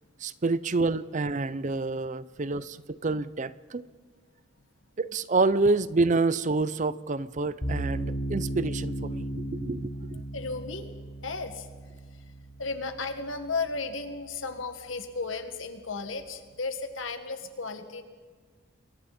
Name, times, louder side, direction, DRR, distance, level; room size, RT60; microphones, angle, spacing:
voice 1, 0.2-3.9 5.0-10.2, right 3 dB, 35° right, 0.5 m, -28 dB
sound 1, 7.6-14.7, right 1 dB, 50° left, 3.6 m, -36 dB
voice 2, 10.3-10.9 11.2-11.7 12.1-12.2 12.6-18.0, left 4 dB, 75° left, 1.9 m, -34 dB
29.0 x 22.5 x 4.3 m
head